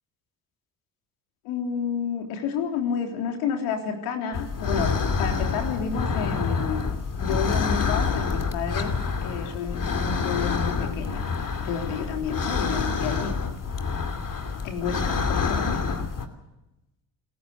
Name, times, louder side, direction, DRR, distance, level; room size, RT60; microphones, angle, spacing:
voice 1, 1.4-4.9 5.2-6.9 7.2-8.9 9.2-11.2 11.6-13.3 14.6-16.0, left 6 dB, 75° left, 3 dB, 3.6 m, -30 dB
sound 1, 4.3-16.3, left 5 dB, 40° left, 2.7 m, -27 dB
28.5 x 15.0 x 6.7 m, 0.95 s
hypercardioid pair, 60°, 49 cm